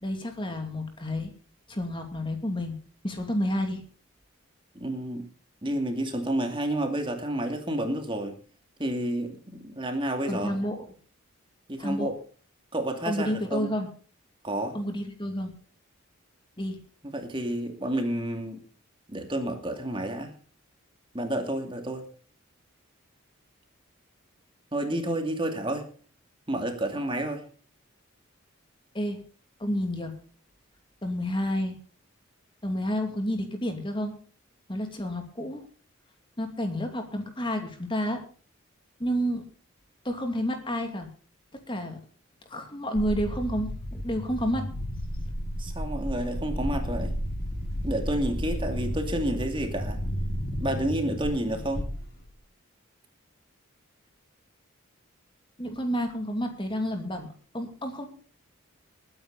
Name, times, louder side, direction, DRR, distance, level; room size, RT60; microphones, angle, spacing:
voice 1, 0.0-1.3 1.7-2.8 3.0-3.8 10.3-10.8 11.8-12.1 13.1-13.9 14.7-15.5 16.6-16.8 28.9-29.2 29.6-30.1 31.0-31.8 32.6-34.1 34.7-35.7 36.4-38.2 39.0-39.4 40.0-41.1 41.7-42.0 42.5-44.7 55.6-57.3 57.5-58.1, equal, 25° left, 5 dB, 2.6 m, -30 dB
voice 2, 4.7-5.3 5.6-8.4 8.8-10.6 11.7-12.1 12.7-13.7 14.4-14.8 17.0-18.6 19.1-20.3 21.1-22.1 24.7-25.9 26.5-27.4 45.6-47.1 47.8-50.0 50.5-51.9, right 1 dB, 25° right, 4 dB, 2.5 m, -30 dB
sound 1, 42.9-52.3, equal, 50° left, 6.2 m, -32 dB
21.5 x 9.8 x 4.1 m, 0.42 s
head